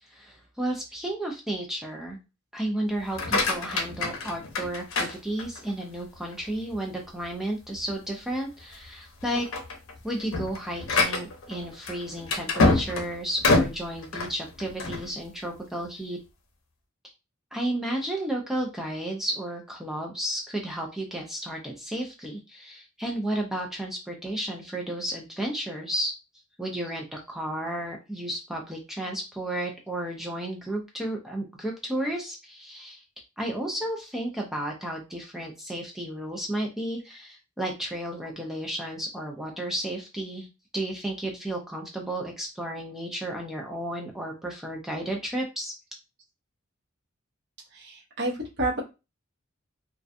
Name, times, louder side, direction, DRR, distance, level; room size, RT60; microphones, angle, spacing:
voice 1, 0.0-2.2 2.5-9.5 10.0-16.2 17.5-26.1 26.6-33.0 33.4-40.5 40.7-45.7, right 1 dB, ahead, 0 dB, 0.3 m, -32 dB
sound 1, 3.0-5.8 6.3-6.8 7.2-7.3 7.8-7.9 8.6-8.9 9.2-15.1, left 3 dB, 75° left, 0.7 m, -26 dB
voice 2, 47.7-48.8, right 2 dB, 55° right, -3 dB, 0.9 m, -30 dB
2.4 x 2.2 x 2.5 m, 0.27 s
head